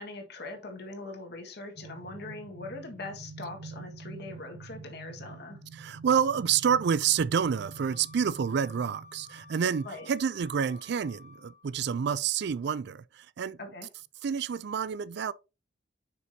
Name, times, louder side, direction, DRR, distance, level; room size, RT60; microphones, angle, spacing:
voice 1, 0.0-5.6 9.8-10.1 13.6-13.9, left 2 dB, 60° left, 1.7 m, -42 dB
sound 1, 1.8-10.0, right 4 dB, 80° right, 1.3 m, -47 dB
voice 2, 5.7-13.6 14.2-15.3, right 7 dB, 65° right, 0.4 m, -28 dB
Wind instrument woodwind instrument, 7.7-11.7, left 4 dB, 40° left, 1.3 m, -53 dB
7.6 x 5.9 x 2.8 m
head